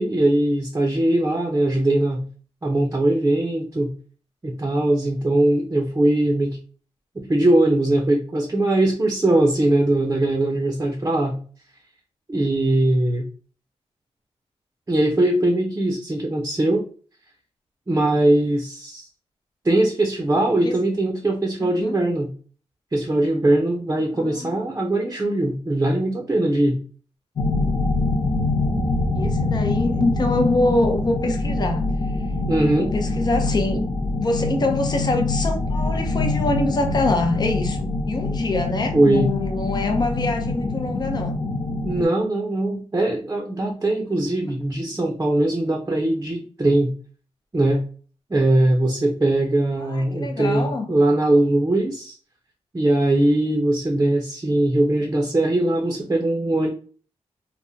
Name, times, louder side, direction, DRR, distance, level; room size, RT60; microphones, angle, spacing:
voice 1, 0.0-2.2 2.6-3.9 4.4-6.6 7.1-11.4 12.3-13.3 14.9-16.8 17.9-19.1 19.6-22.3 22.9-26.8 32.5-33.0 38.9-39.3 41.8-46.9 47.5-47.8 48.3-52.2 52.7-56.7, right 1 dB, 25° right, 0.6 m, -21 dB
voice 2, 21.6-22.0 24.1-24.6 29.2-31.8 32.7-33.9 34.2-41.4 44.4-44.5 49.8-51.0, left 2 dB, 40° left, 0.6 m, -25 dB
sound 1, 27.4-42.0, left 2 dB, 85° left, 0.7 m, -24 dB
3.4 x 2.1 x 2.7 m
cardioid pair, 65°, 11 cm